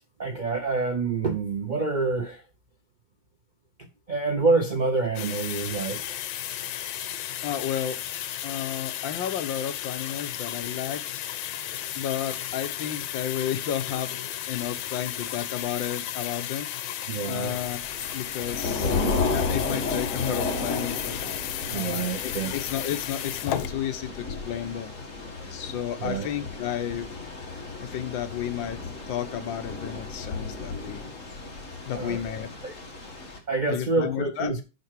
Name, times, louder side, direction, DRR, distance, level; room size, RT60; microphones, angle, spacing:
voice 1, 0.2-2.4 3.8-6.2 17.1-17.6 21.7-22.5 25.4-25.5 26.0-26.3 31.9-32.2 32.6-32.7 33.5-34.6, right 3 dB, 75° right, 0.4 m, -27 dB
sound 1, 5.2-23.7, left 11 dB, 90° left, 1.6 m, -34 dB
voice 2, 7.4-8.0 8.4-11.0 12.0-14.2 14.5-16.7 17.3-17.8 18.1-18.9 19.3-21.2 21.7-25.0 25.5-27.1 27.8-28.8 29.1-31.1 31.9-32.5 33.7-34.6, left 10 dB, 75° left, 1.6 m, -32 dB
Thunder / Rain, 17.4-33.4, left 3 dB, 40° left, 2.1 m, -33 dB
9.5 x 6.0 x 4.7 m
omnidirectional pair, 2.2 m